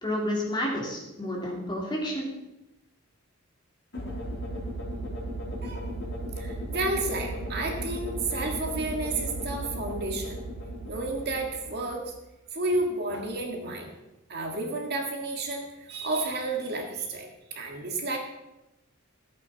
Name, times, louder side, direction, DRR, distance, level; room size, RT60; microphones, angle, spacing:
voice 1, 0.0-2.3, left 1 dB, 20° left, -3 dB, 2.7 m, -30 dB
sound 1, 3.9-12.1, right 1 dB, 55° left, 4.7 m, -35 dB
voice 2, 6.4-10.4 10.8-12.1 12.5-13.9 14.3-18.2, right 2 dB, 50° right, 1 dB, 1.9 m, -31 dB
15.0 x 8.5 x 4.1 m, 0.95 s
head